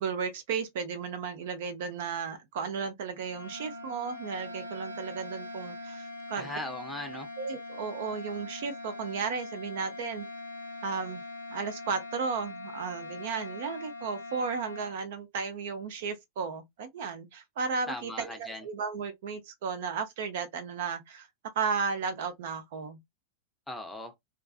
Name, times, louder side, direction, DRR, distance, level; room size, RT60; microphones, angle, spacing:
voice 1, 0.0-6.5 7.4-10.3 10.8-11.2 11.5-21.3 21.6-23.0, right 5 dB, 55° right, 0.5 m, -34 dB
sound 1, 3.1-15.0, left 2 dB, 85° left, 0.5 m, -42 dB
voice 2, 6.4-7.3 17.9-18.7 23.7-24.1, left 1 dB, 5° left, 0.7 m, -38 dB
2.4 x 2.3 x 2.3 m
figure-of-eight pair, 90°, 0 cm